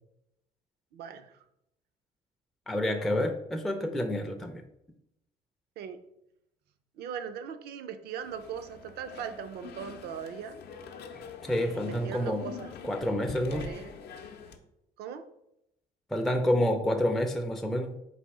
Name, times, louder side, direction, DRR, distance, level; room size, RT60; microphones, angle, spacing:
voice 1, 0.9-1.4 5.8-6.0 7.0-10.6 11.5-12.7 13.5-14.0 15.0-15.2, right 7 dB, 70° right, 10 dB, 0.5 m, -40 dB
voice 2, 2.7-4.6 11.4-12.4 12.8-13.7 16.1-18.0, left 1 dB, ahead, 4 dB, 0.4 m, -28 dB
sound 1, 8.2-14.6, left 6 dB, 75° left, 0.6 m, -45 dB
4.1 x 2.7 x 4.7 m, 0.81 s
cardioid pair, 110°, 17 cm